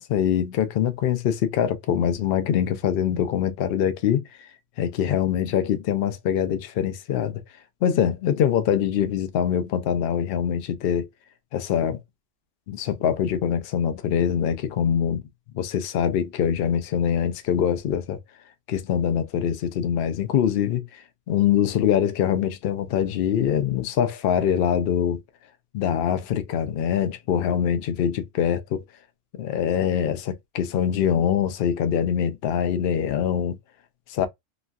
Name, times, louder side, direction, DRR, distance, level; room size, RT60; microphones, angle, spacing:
voice 1, 0.0-4.5 4.8-7.4 7.8-11.1 11.5-12.0 12.7-15.2 15.5-18.2 18.7-21.0 21.3-25.2 25.7-28.8 29.3-33.6 34.1-34.3, left 9 dB, 60° left, 0.6 m, -24 dB
3.0 x 2.5 x 2.3 m
omnidirectional pair, 1.4 m